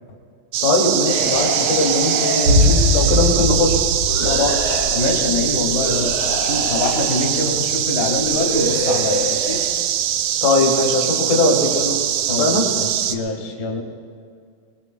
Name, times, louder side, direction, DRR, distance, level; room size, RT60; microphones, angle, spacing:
sound 1, 0.5-13.2, right 11 dB, 80° right, 2.4 m, -22 dB
voice 1, 0.6-3.8 4.2-4.6 10.4-12.0 12.4-12.7, left 2 dB, 60° left, -1 dB, 3.8 m, -20 dB
sound 2, 1.0-3.3 4.0-4.9 5.7-7.3 8.2-9.7, equal, 10° right, 4.9 m, -26 dB
sound 3, 2.4-6.7 6.9-7.0, left 1 dB, 55° right, 4.2 m, -21 dB
voice 2, 4.8-6.1 6.4-9.6 12.3-13.8, left 2 dB, 45° left, 1 dB, 0.8 m, -24 dB
24.0 x 22.0 x 2.2 m, 2.2 s
omnidirectional pair, 4.1 m